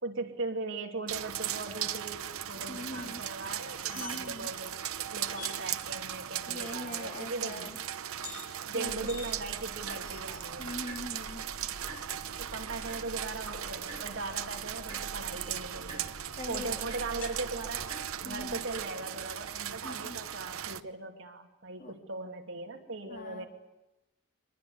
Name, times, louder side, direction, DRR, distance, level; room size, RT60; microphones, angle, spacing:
voice 1, 0.0-4.8 5.1-7.7 8.7-10.8 12.4-16.1 16.5-17.8 18.2-23.5, right 3 dB, 65° right, 3 dB, 2.9 m, -39 dB
sound 1, 1.1-20.8, right 10 dB, 85° right, 0.9 m, -38 dB
voice 2, 2.7-3.2 4.0-4.5 6.5-7.8 8.7-9.1 10.6-11.4 16.4-16.8 18.2-18.7 19.8-20.2 21.8-21.9 23.1-23.5, left 1 dB, 40° left, 2 dB, 3.5 m, -42 dB
sound 2, 3.6-4.5 4.8-4.9 5.3-5.6 8.1-8.5 9.1-9.3 10.0-10.6 11.5-12.4 14.2-15.9 17.2-17.4, left 5 dB, 80° left, 7.2 m, -49 dB
sound 3, 8.9-18.8, right 1 dB, 20° right, 6.1 m, -48 dB
24.5 x 20.0 x 9.8 m, 0.98 s
head